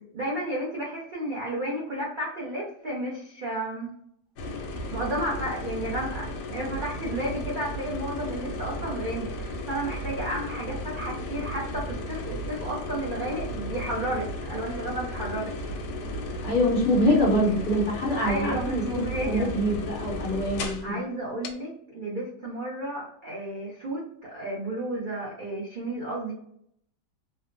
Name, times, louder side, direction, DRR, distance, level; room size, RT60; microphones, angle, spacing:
voice 1, 0.1-3.9 4.7-15.5 18.1-19.5 20.8-26.3, right 1 dB, 55° right, -5 dB, 0.5 m, -32 dB
sound 1, 4.4-20.9 21.4-21.5, left 1 dB, 80° left, 1.2 m, -34 dB
voice 2, 16.4-18.8 19.2-21.0, equal, 50° left, -5 dB, 1.3 m, -24 dB
3.1 x 2.0 x 2.6 m, 0.69 s
omnidirectional pair, 1.8 m